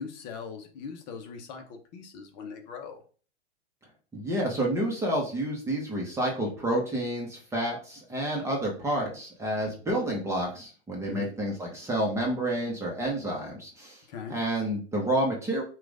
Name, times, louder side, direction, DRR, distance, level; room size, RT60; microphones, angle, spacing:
voice 1, 0.0-3.0 11.1-11.3 14.1-14.4, left 6 dB, 40° left, 4 dB, 1.0 m, -40 dB
voice 2, 4.1-14.0 14.3-15.6, right 1 dB, 10° right, -2 dB, 0.9 m, -29 dB
5.9 x 2.5 x 3.5 m, 0.40 s
hypercardioid pair, 140°, 34 cm